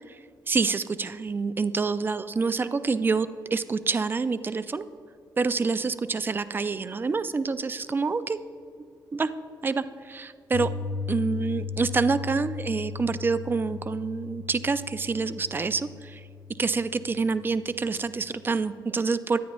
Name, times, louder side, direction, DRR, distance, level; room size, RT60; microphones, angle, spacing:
voice 1, 0.5-4.9 5.4-8.4 9.1-9.3 9.6-10.7 11.1-16.2 16.6-19.4, right 4 dB, 25° right, 13 dB, 0.3 m, -27 dB
Piano, 10.5-18.6, left 5 dB, 70° left, 0.4 m, -37 dB
10.0 x 9.2 x 3.0 m, 2.3 s
cardioid pair, 105°, 8 cm